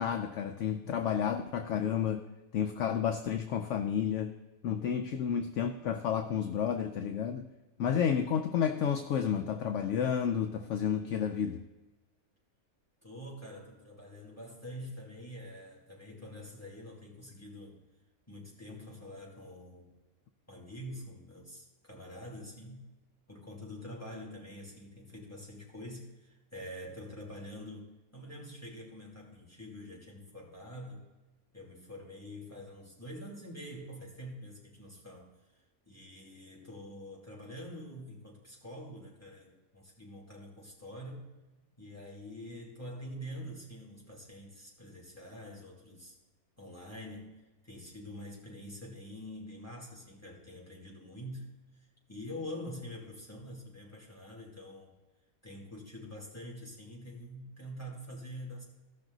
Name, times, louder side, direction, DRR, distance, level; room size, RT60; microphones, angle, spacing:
voice 1, 0.0-2.2 2.5-4.4 4.6-7.4 7.8-11.6, left 8 dB, 65° left, 7 dB, 0.8 m, -31 dB
voice 2, 13.0-17.8 18.3-19.9 20.5-22.9 23.3-31.1 31.5-41.3 41.8-46.2 46.6-51.5 51.8-54.9 55.4-58.6, equal, 10° left, -3 dB, 2.5 m, -46 dB
15.5 x 6.1 x 3.9 m, 1.1 s
omnidirectional pair, 1.5 m